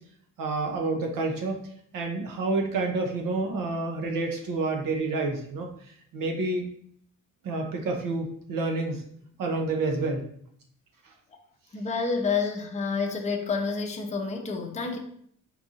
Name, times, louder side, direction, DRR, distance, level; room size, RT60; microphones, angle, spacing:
voice 1, 0.4-1.6 1.9-5.7 6.1-6.6 7.4-9.0 9.4-10.2, right 3 dB, 85° right, 3 dB, 0.9 m, -28 dB
voice 2, 11.7-15.0, left 4 dB, 20° left, 2 dB, 0.6 m, -29 dB
4.6 x 2.5 x 4.0 m, 0.65 s
cardioid pair, 120°, 32 cm